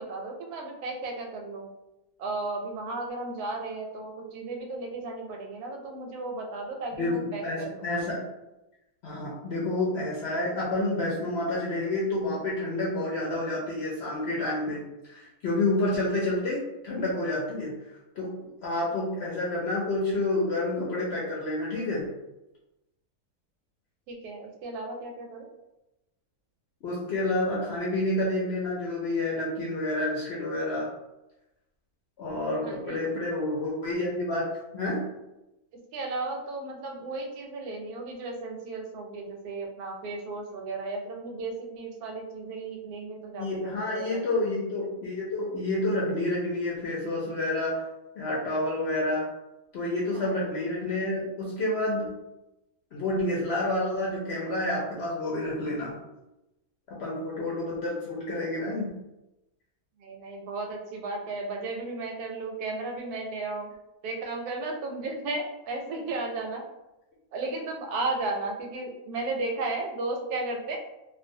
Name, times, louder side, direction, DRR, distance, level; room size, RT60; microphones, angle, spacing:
voice 1, 0.0-1.7 2.2-7.8 24.1-25.5 32.6-33.0 35.9-44.5 50.1-50.3 60.0-63.7 64.0-66.6 67.3-70.8, right 2 dB, 85° right, 1 dB, 1.1 m, -34 dB
voice 2, 7.0-8.2 9.0-17.7 18.2-18.3 18.6-22.1 26.8-30.9 32.2-35.0 43.4-47.8 48.2-49.3 49.7-52.1 52.9-55.9 56.9-58.9, left 2 dB, 65° left, -5 dB, 0.7 m, -29 dB
2.5 x 2.2 x 2.6 m, 0.96 s
omnidirectional pair, 1.6 m